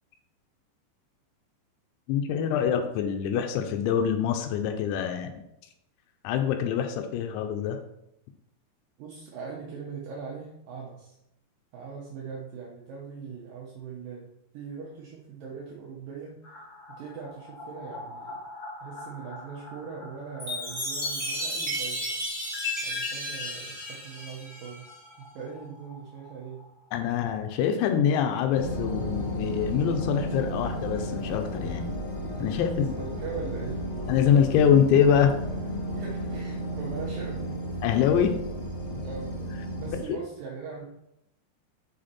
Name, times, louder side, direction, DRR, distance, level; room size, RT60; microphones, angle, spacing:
voice 1, 2.1-5.3 6.2-7.8 26.9-31.9 32.4-32.9 34.1-35.3 37.8-38.3 40.1-40.2, left 8 dB, 90° left, 6 dB, 2.9 m, -24 dB
voice 2, 9.0-11.2 11.7-16.4 17.0-18.4 18.8-22.2 22.8-26.7 32.3-33.9 35.9-37.6 39.0-39.4 39.7-40.9, right 5 dB, 85° right, -3 dB, 1.9 m, -41 dB
sound 1, 16.4-28.0 28.3-28.4 28.7-28.8 31.8-31.9 32.1-32.2 32.5-34.2 34.6-34.7, left 2 dB, 45° left, 2.5 m, -48 dB
Chime, 20.4-25.0, left 1 dB, 15° right, 0.9 m, -33 dB
sound 2, 28.5-40.0, equal, 70° left, 1.6 m, -33 dB
6.3 x 5.1 x 4.2 m, 0.83 s
omnidirectional pair, 5.2 m